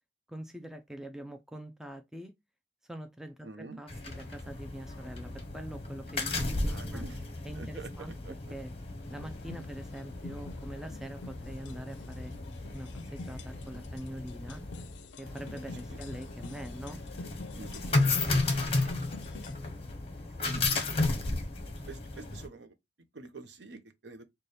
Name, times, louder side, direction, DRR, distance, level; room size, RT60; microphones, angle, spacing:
voice 1, 0.3-2.3 2.9-7.0 7.4-8.1 8.5-8.7 9.1-12.3 12.7-14.6 15.2-17.0, right 1 dB, 5° right, 0.3 m, -44 dB
voice 2, 3.4-3.8 6.7-7.2 7.5-7.9 8.2-8.5 15.7-16.0 17.6-18.2 18.8-18.9 20.4-21.4 21.9-22.8 23.1-24.2, right 3 dB, 65° right, 0.6 m, -47 dB
sound 1, 3.9-22.5, left 2 dB, 30° left, 0.8 m, -34 dB
sound 2, 9.0-19.5, left 3 dB, 75° left, 0.4 m, -48 dB
4.0 x 2.2 x 3.2 m
head